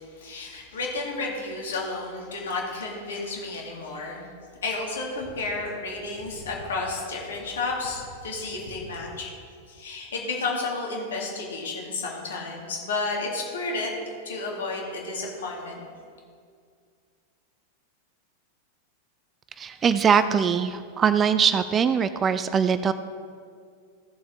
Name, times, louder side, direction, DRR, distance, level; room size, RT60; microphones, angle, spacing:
voice 1, 0.1-4.3 4.6-9.3 9.7-13.9 14.2-15.8, left 3 dB, 65° left, -2 dB, 2.4 m, -32 dB
voice 2, 19.6-22.9, right 7 dB, 25° right, 12 dB, 0.4 m, -22 dB
15.0 x 7.0 x 3.7 m, 2.2 s
figure-of-eight pair, 90°, 0 cm